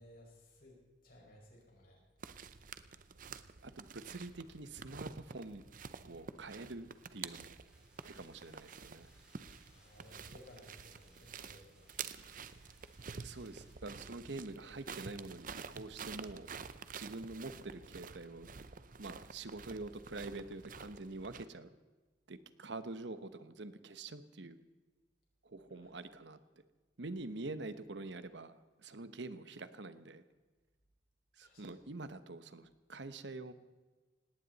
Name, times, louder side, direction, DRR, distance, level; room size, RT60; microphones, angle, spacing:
voice 1, 0.0-2.0 2.3-2.6 9.7-11.9 25.7-25.9 31.4-31.7, equal, 50° left, -2 dB, 5.7 m, -59 dB
sound 1, 2.2-21.5, right 6 dB, 45° right, 0.6 m, -49 dB
voice 2, 3.6-5.6 6.1-7.5 8.0-9.1 13.2-16.5 17.0-18.5 19.0-21.7 22.3-24.6 25.4-26.4 27.0-30.2 31.4-33.5, right 2 dB, 70° right, 12 dB, 1.0 m, -46 dB
sound 2, 7.7-13.7, right 1 dB, 5° right, 4.6 m, -67 dB
19.0 x 17.5 x 4.1 m, 1.3 s
head